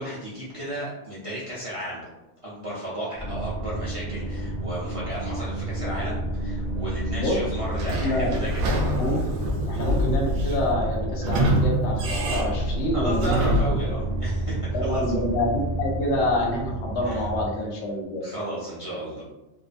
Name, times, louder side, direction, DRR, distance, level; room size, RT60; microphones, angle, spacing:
voice 1, 0.0-2.1 2.4-8.6 12.9-15.0 17.0-17.2 18.2-19.2, right 1 dB, 45° right, -9 dB, 0.4 m, -33 dB
sound 1, 3.2-17.5, right 1 dB, 30° left, 0.8 m, -30 dB
Sliding door / Squeak, 7.7-13.9, right 1 dB, 80° right, 0.9 m, -26 dB
voice 2, 7.8-8.3 8.9-13.6 14.0-14.2 14.7-18.2, left 1 dB, 70° left, -1 dB, 0.9 m, -27 dB
2.6 x 2.2 x 2.4 m, 1.0 s
omnidirectional pair, 1.2 m